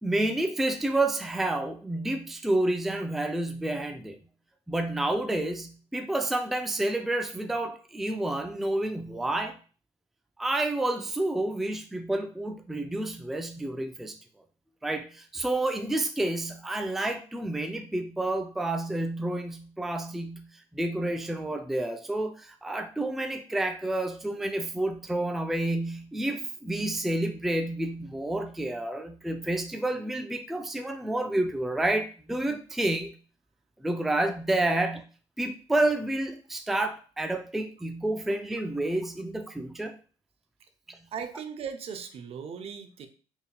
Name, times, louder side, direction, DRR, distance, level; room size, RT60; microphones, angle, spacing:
voice 1, 0.0-4.2 4.7-9.6 10.4-14.1 14.8-20.5 20.7-33.1 33.8-35.0 35.4-40.0 40.9-41.0, right 1 dB, ahead, 6 dB, 0.4 m, -29 dB
voice 2, 41.1-43.1, right 7 dB, 50° right, 7 dB, 0.6 m, -38 dB
4.4 x 3.5 x 2.2 m, 0.38 s
cardioid pair, 115°, 13 cm